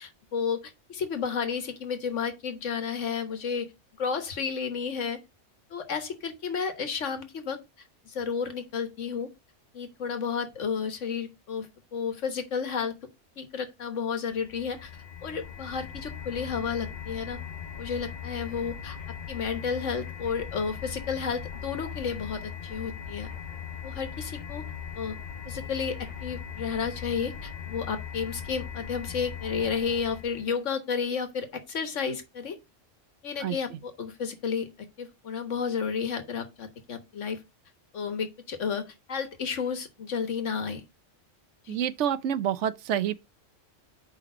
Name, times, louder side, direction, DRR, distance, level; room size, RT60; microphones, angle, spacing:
voice 1, 0.0-3.7 4.0-5.2 5.7-7.6 8.0-9.3 9.7-11.7 11.9-12.9 13.4-14.9 15.2-17.4 17.8-19.0 19.3-23.3 23.8-24.6 24.9-25.2 25.5-32.6 33.2-34.7 35.0-37.4 37.9-40.8 41.6-41.8, left 6 dB, 75° left, 1.5 m, -32 dB
sound 1, 14.3-30.5, left 8 dB, 40° left, 0.8 m, -39 dB
voice 2, 41.7-43.1, right 9 dB, 70° right, 0.9 m, -27 dB
5.0 x 4.3 x 6.0 m
omnidirectional pair, 1.3 m